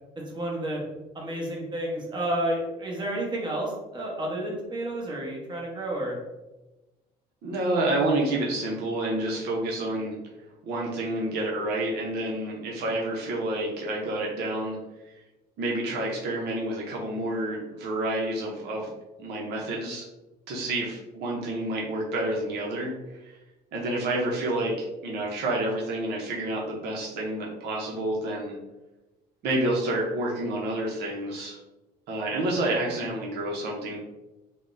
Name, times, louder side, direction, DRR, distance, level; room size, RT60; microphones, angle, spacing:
voice 1, 0.2-0.8 1.1-6.2, right 1 dB, 25° right, -2 dB, 0.9 m, -31 dB
voice 2, 7.4-10.2 10.6-14.8 15.6-18.9 19.2-20.0 20.5-23.4 23.7-24.7 25.0-28.6 29.4-31.6 32.1-34.0, right 1 dB, 75° right, -2 dB, 0.6 m, -29 dB
3.5 x 2.1 x 2.5 m, 1.1 s
cardioid pair, 110°, 17 cm